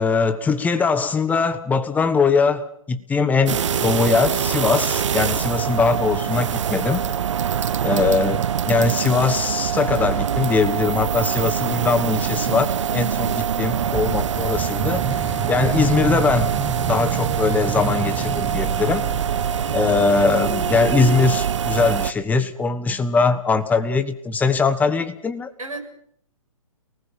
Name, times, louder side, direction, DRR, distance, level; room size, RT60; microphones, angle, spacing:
voice 1, 0.0-7.1 7.8-16.6 16.9-19.1 19.7-25.5, left 4 dB, 10° left, 10 dB, 1.5 m, -21 dB
sound 1, 3.5-22.1, right 8 dB, 60° right, 1.0 m, -24 dB
sound 2, 13.8-20.6 21.0-21.1, right 6 dB, 15° right, 1.4 m, -29 dB
voice 2, 19.4-19.9 25.6-25.8, right 2 dB, 80° right, 3 dB, 6.9 m, -37 dB
29.5 x 19.5 x 5.8 m, 0.65 s
figure-of-eight pair, 130°, 18 cm